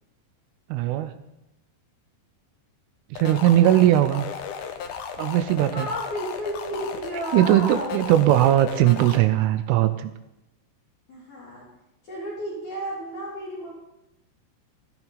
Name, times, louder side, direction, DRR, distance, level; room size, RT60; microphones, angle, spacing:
voice 1, 0.7-1.2 3.1-4.3 5.2-5.9 7.3-10.1, right 13 dB, 80° right, 11 dB, 3.1 m, -19 dB
sound 1, 3.2-9.2, left 7 dB, 70° left, 2.5 m, -35 dB
voice 2, 5.6-8.0 11.1-11.7 12.1-13.7, equal, 40° left, -5 dB, 3.6 m, -32 dB
16.0 x 14.0 x 4.1 m, 0.90 s
omnidirectional pair, 5.7 m